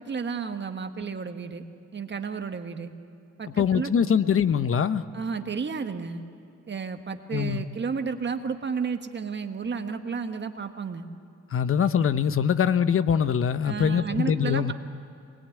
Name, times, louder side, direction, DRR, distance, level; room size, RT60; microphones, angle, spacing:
voice 1, 0.0-1.6 1.9-2.9 3.4-4.1 5.1-6.2 6.7-11.1 13.6-14.7, right 5 dB, 35° right, 6 dB, 1.5 m, -32 dB
voice 2, 3.6-5.0 7.3-7.6 11.5-14.7, left 7 dB, 45° left, 13 dB, 1.0 m, -23 dB
23.5 x 21.0 x 9.5 m, 2.6 s
cardioid pair, 90°, 30 cm